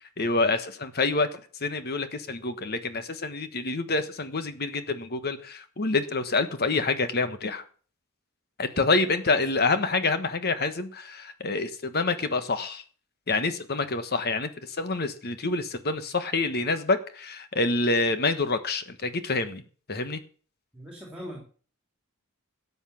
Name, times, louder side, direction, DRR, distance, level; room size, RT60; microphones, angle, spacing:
voice 1, 0.2-7.6 8.6-12.8 13.3-19.6 19.9-20.2, left 3 dB, 45° left, 10 dB, 1.4 m, -27 dB
voice 2, 20.7-21.4, equal, 5° right, 0 dB, 3.4 m, -40 dB
12.5 x 8.3 x 7.1 m, 0.42 s
head